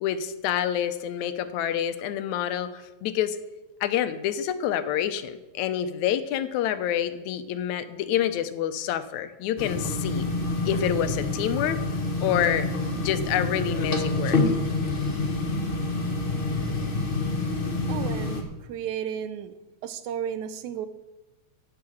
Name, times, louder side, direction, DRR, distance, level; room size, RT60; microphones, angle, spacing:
voice 1, 0.0-3.4 3.8-10.3 10.7-11.8 12.2-12.7 13.0-14.4, left 10 dB, 80° left, 11 dB, 2.1 m, -27 dB
sound 1, 9.6-18.4, left 2 dB, 35° left, 0.8 m, -27 dB
voice 2, 17.9-19.5 19.8-20.9, right 9 dB, 85° right, 12 dB, 2.1 m, -33 dB
10.5 x 6.7 x 8.6 m, 1.1 s
omnidirectional pair, 3.3 m